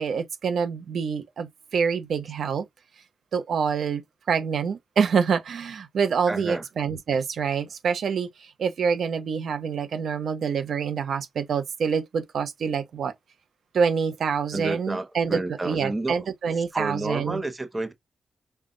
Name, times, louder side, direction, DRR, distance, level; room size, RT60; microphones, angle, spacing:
voice 1, 0.0-2.6 3.3-4.0 4.3-8.3 8.6-13.1 13.7-17.4, right 6 dB, 70° right, 0.8 m, -26 dB
voice 2, 6.3-6.6 14.5-16.3 16.7-17.9, right 2 dB, 15° right, 0.7 m, -30 dB
5.5 x 2.3 x 3.8 m
wide cardioid pair, 140°, 0 cm